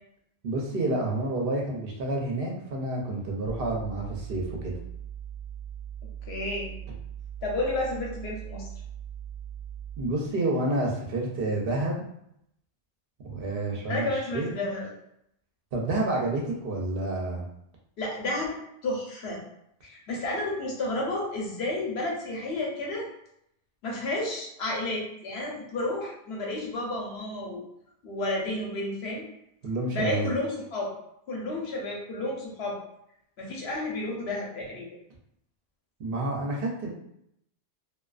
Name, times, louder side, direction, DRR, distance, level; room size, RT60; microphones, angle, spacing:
voice 1, 0.4-4.7 10.0-12.0 13.2-14.5 15.7-17.4 29.6-30.3 36.0-36.9, right 2 dB, 65° right, -1 dB, 0.7 m, -29 dB
sound 1, 3.5-10.3, right 9 dB, 35° left, 0.8 m, -40 dB
voice 2, 6.3-6.8 7.4-8.7 13.9-14.9 18.0-19.4 19.8-23.0 23.8-27.6 28.0-29.3 29.9-30.9 31.3-32.8 33.4-34.9, left 2 dB, 75° left, -2 dB, 0.9 m, -31 dB
2.3 x 2.3 x 2.3 m, 0.76 s
omnidirectional pair, 1.1 m